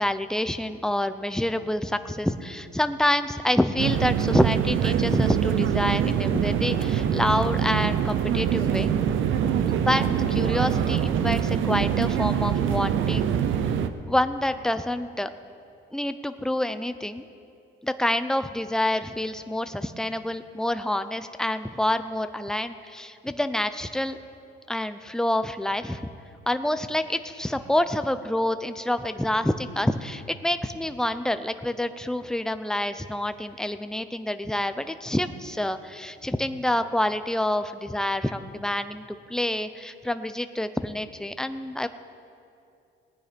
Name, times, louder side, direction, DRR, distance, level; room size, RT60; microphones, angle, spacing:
voice 1, 0.0-8.9 9.8-13.3 14.1-15.3 15.9-17.2 17.8-24.2 24.7-26.1 26.5-41.9, left 1 dB, 5° left, 10 dB, 0.6 m, -27 dB
sound 1, 3.8-13.9, right 8 dB, 80° right, 0.7 m, -24 dB
18.5 x 9.6 x 5.2 m, 2.6 s
cardioid pair, 90°, 20 cm